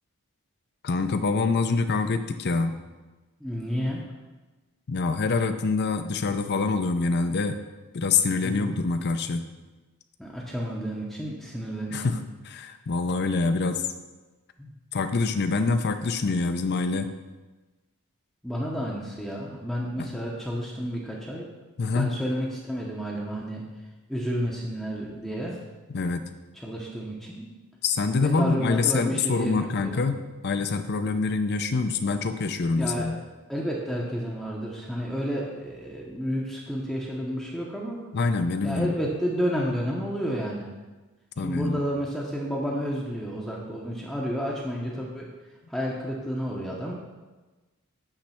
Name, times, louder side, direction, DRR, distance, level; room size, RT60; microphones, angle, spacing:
voice 1, 0.8-2.7 4.9-7.6 7.9-9.4 11.9-12.2 12.5-13.8 14.9-17.1 21.8-22.1 25.9-26.3 27.8-33.2 38.1-39.0 41.4-41.8, left 4 dB, 50° left, 9 dB, 0.5 m, -25 dB
voice 2, 3.4-4.0 8.4-8.7 10.2-12.1 14.6-14.7 18.4-21.5 21.9-23.7 24.1-25.6 26.6-27.5 28.2-30.0 32.8-33.1 33.5-38.1 38.6-40.7 41.4-45.3 45.7-46.9, equal, ahead, -4 dB, 0.7 m, -31 dB
8.8 x 3.3 x 5.6 m, 1.2 s
head